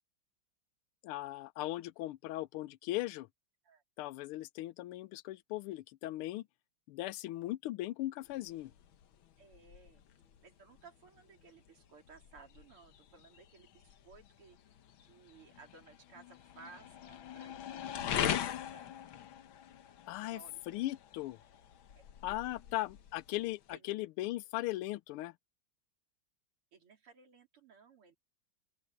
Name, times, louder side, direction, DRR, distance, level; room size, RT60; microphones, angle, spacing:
voice 1, 1.0-3.3 4.0-6.5 6.9-8.7 20.1-21.4 22.2-25.3, left 16 dB, 85° left, 1.5 m, -38 dB
sound 1, 8.2-23.8, left 10 dB, 70° left, 1.8 m, -42 dB
voice 2, 9.4-10.0 10.4-14.6 15.0-18.9 20.2-20.9 22.0-22.6 23.7-23.9 26.7-28.2, right 5 dB, 90° right, 4.0 m, -59 dB
open air
omnidirectional pair, 2.4 m